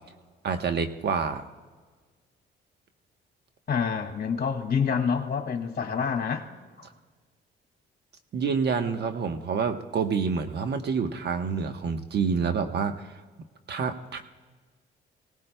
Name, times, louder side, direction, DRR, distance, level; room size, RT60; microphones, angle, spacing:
voice 1, 0.4-1.4 8.3-13.1 13.7-14.2, right 5 dB, 60° right, 7 dB, 1.1 m, -28 dB
voice 2, 3.7-6.5, left 6 dB, 50° left, 5 dB, 2.1 m, -27 dB
25.5 x 18.0 x 2.3 m, 1.4 s
cardioid pair, 90°, 20 cm